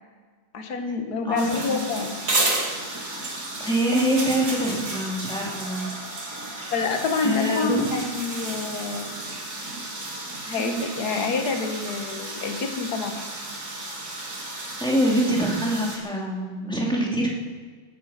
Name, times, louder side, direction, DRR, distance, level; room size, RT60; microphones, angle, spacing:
voice 1, 0.5-2.1 6.7-9.1 10.5-13.2, left 4 dB, 50° left, 4 dB, 1.9 m, -27 dB
voice 2, 1.2-2.1 2.7-2.8 3.6-5.9 6.5-6.7 7.2-7.9 10.6-10.9 14.8-17.3, right 1 dB, ahead, -3 dB, 2.5 m, -25 dB
sound 1, 1.4-16.0, right 2 dB, 40° right, 2.4 m, -32 dB
19.5 x 9.6 x 5.8 m, 1.5 s
omnidirectional pair, 2.3 m